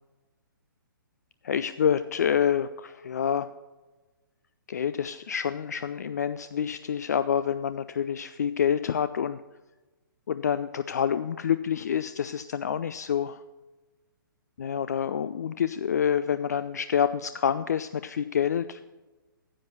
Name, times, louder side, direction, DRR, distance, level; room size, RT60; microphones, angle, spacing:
voice 1, 1.4-3.5 4.7-9.4 10.3-13.4 14.6-18.8, left 8 dB, 50° left, 13 dB, 0.3 m, -27 dB
9.9 x 7.7 x 5.8 m, 1.2 s
figure-of-eight pair, 125°, 12 cm